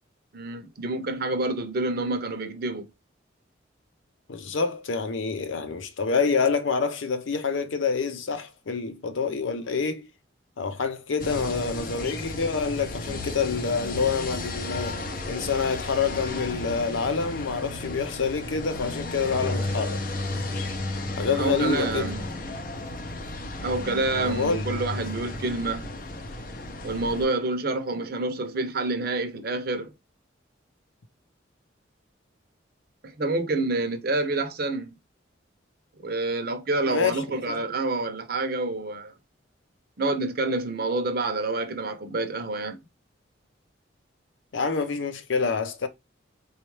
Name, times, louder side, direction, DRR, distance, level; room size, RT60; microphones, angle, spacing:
voice 1, 0.3-2.9 21.3-22.2 23.6-25.9 26.8-29.9 33.0-34.9 36.0-39.1 40.0-42.8, right 2 dB, 50° right, 0.7 m, -28 dB
voice 2, 4.3-10.1 10.6-20.0 21.2-22.1 24.1-24.6 36.9-37.6 44.5-45.9, left 5 dB, 85° left, 0.6 m, -27 dB
sound 1, 11.2-27.3, left 2 dB, 45° left, 0.6 m, -33 dB
4.1 x 2.4 x 3.1 m
head